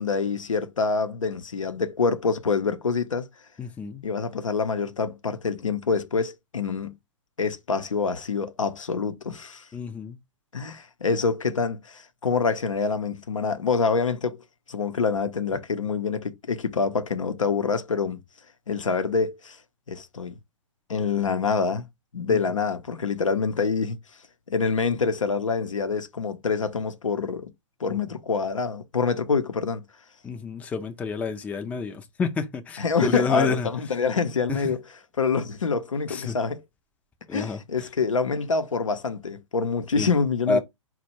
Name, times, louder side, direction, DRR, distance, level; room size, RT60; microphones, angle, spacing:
voice 1, 0.0-3.3 4.0-6.9 7.4-9.7 10.5-14.4 14.7-18.2 18.7-19.6 19.9-20.4 20.9-21.9 22.1-24.0 24.5-27.5 27.8-29.8 32.8-34.8 35.2-36.6 37.3-40.6, left 5 dB, 85° left, 0.7 m, -26 dB
voice 2, 3.6-4.0 9.7-10.2 22.3-22.4 27.9-28.0 30.2-33.7 34.5-34.8 36.1-36.4 37.3-37.9 40.0-40.1 40.5-40.6, left 4 dB, 10° left, 0.4 m, -29 dB
4.3 x 2.2 x 4.2 m
figure-of-eight pair, 120°, 16 cm